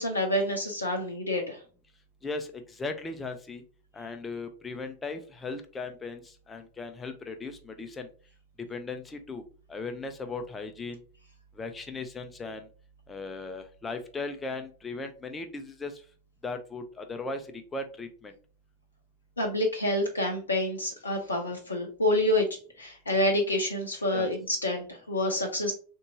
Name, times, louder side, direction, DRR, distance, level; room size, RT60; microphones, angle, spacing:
voice 1, 0.0-1.6 19.4-22.5 22.8-25.7, left 1 dB, 75° left, 2 dB, 0.6 m, -28 dB
voice 2, 2.2-3.6 3.9-8.1 8.7-9.4 9.7-11.0 11.6-12.7 13.1-16.0 16.4-18.3 24.1-24.3, left 3 dB, 15° left, 6 dB, 0.6 m, -37 dB
3.6 x 2.6 x 2.7 m, 0.39 s
figure-of-eight pair, 90°, 0 cm